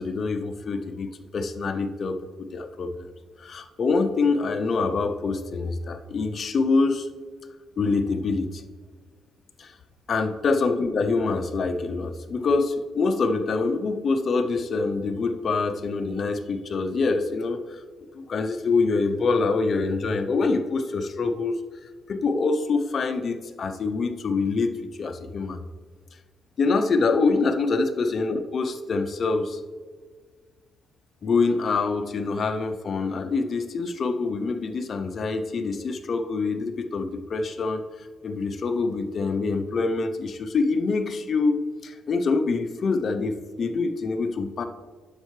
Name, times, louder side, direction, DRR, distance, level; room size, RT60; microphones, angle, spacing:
voice 1, 0.0-3.1 3.4-7.1 7.8-8.6 9.6-9.7 10.1-17.8 18.1-21.6 22.1-24.7 25.0-25.6 26.6-29.6 31.2-41.6 41.8-44.6, left 4 dB, 40° left, 7 dB, 0.5 m, -25 dB
9.7 x 6.5 x 3.2 m, 1.5 s
cardioid pair, 140°, 0 cm